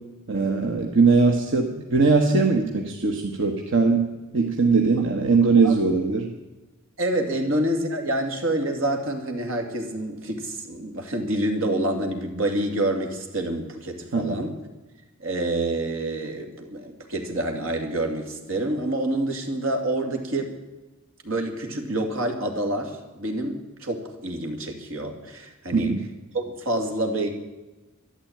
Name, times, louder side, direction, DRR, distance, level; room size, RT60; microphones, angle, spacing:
voice 1, 0.3-4.0 4.3-6.3 14.1-14.4 25.7-26.0, right 4 dB, 65° right, 2 dB, 1.3 m, -20 dB
voice 2, 7.0-14.5 15.2-20.5 21.2-26.0 26.3-27.4, right 1 dB, 80° right, 4 dB, 2.7 m, -27 dB
12.5 x 11.5 x 8.8 m, 1.1 s
head